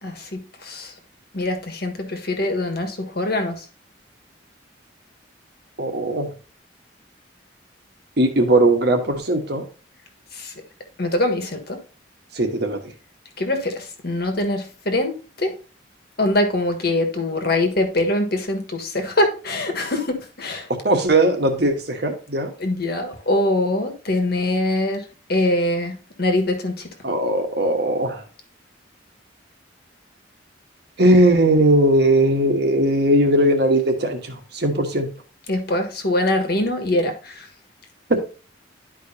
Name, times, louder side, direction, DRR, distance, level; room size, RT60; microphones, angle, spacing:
voice 1, 0.0-0.9 1.3-3.6 10.3-10.5 11.0-11.8 13.4-15.1 15.4-15.5 16.2-20.7 22.6-25.0 25.3-26.9 35.5-37.5, left 1 dB, 55° left, 5 dB, 1.5 m, -23 dB
voice 2, 5.8-6.3 8.2-9.6 12.3-12.9 20.8-22.5 27.0-28.2 31.0-35.1 38.1-38.2, right 1 dB, 60° right, 4 dB, 1.4 m, -19 dB
11.0 x 4.9 x 2.8 m, 0.35 s
head